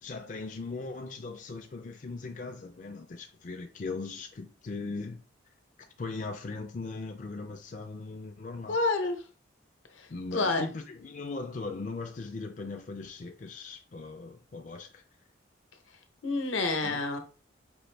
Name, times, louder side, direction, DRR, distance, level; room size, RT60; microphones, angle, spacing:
voice 1, 0.0-5.2 6.0-8.8 10.1-15.0 16.8-17.0, left 3 dB, 40° left, 0.4 m, -39 dB
voice 2, 8.7-9.2 10.0-10.1 10.3-10.7 16.2-17.2, left 3 dB, 80° left, 0.8 m, -28 dB
5.2 x 2.5 x 3.2 m
head